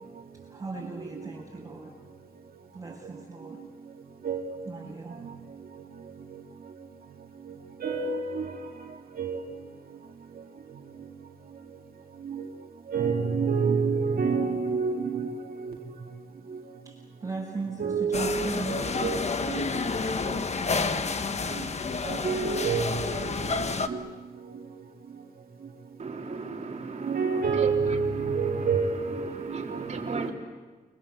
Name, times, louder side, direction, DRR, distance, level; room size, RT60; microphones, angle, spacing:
voice 1, 0.5-2.0 2.7-3.6 4.6-5.3 16.8-19.0, right 3 dB, 20° right, 7.7 m, -38 dB
voice 2, 4.2-4.6 4.8-4.9 7.8-8.6 9.2-9.5 12.3-12.5 12.9-15.9 16.5-16.6 17.8-19.6 22.1-23.2 23.5-23.6 23.9-24.1 26.3-26.4 27.0-29.9, right 5 dB, 75° right, 2.4 m, -28 dB
sound 1, 18.1-23.9, left 4 dB, 45° left, 1.4 m, -29 dB
voice 3, 26.0-30.3, right 4 dB, 45° right, 3.8 m, -36 dB
29.5 x 24.0 x 8.2 m
wide cardioid pair, 145°, 15 cm